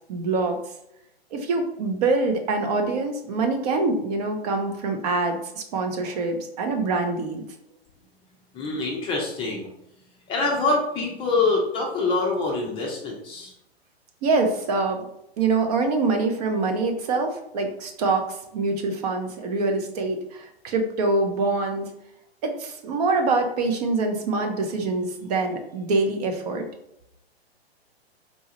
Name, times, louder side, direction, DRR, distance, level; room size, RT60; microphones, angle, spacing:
voice 1, 0.1-0.6 1.3-7.4 14.2-15.0 15.4-21.9 22.4-26.7, right 3 dB, 40° right, 4 dB, 0.6 m, -25 dB
voice 2, 8.5-9.7 10.3-13.5, left 3 dB, 15° left, -1 dB, 0.5 m, -25 dB
4.0 x 2.3 x 2.8 m, 0.79 s
figure-of-eight pair, 115°, 32 cm